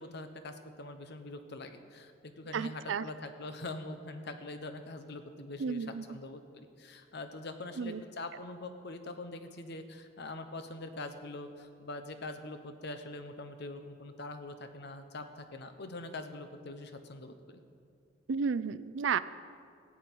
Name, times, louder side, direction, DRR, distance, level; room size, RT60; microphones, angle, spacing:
voice 1, 0.0-17.6, left 2 dB, 60° left, 8 dB, 1.0 m, -43 dB
voice 2, 2.5-3.1 5.6-6.0 7.8-8.0 18.3-19.2, right 6 dB, 75° right, 15 dB, 0.4 m, -32 dB
15.0 x 6.2 x 9.1 m, 2.4 s
head